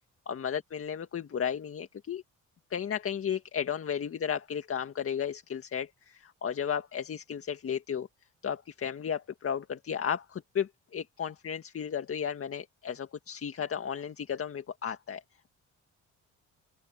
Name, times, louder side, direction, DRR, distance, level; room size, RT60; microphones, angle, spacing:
voice 1, 0.3-2.2 2.7-8.1 8.4-15.2, left 8 dB, 50° left, 1.8 m, -34 dB
open air
cardioid pair, 90°, 30 cm